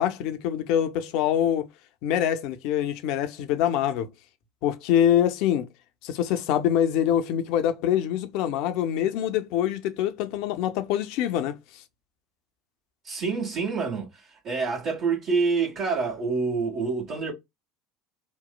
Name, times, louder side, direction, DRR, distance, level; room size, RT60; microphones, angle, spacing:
voice 1, 0.0-1.7 2.0-4.1 4.6-5.7 6.0-11.8, left 10 dB, 65° left, 0.5 m, -25 dB
voice 2, 13.0-17.3, right 4 dB, 55° right, 1.3 m, -27 dB
3.0 x 2.0 x 2.2 m
hypercardioid pair, 75°, 0 cm